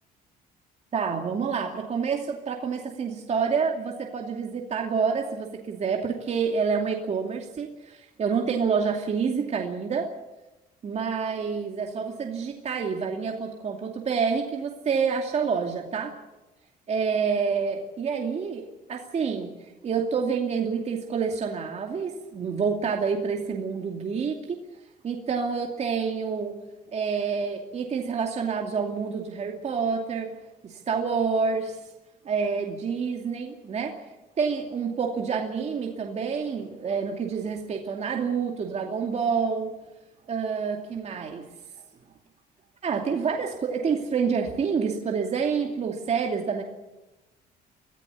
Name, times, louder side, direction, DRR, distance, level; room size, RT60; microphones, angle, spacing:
voice 1, 0.9-10.1 10.8-16.1 16.9-19.5 19.8-24.6 25.0-26.6 26.9-30.3 30.6-31.8 32.2-34.0 34.4-39.8 40.3-41.5 42.8-46.6, right 6 dB, 40° right, 2 dB, 2.6 m, -28 dB
24.5 x 14.5 x 8.5 m, 1.0 s
cardioid pair, 110°, 17 cm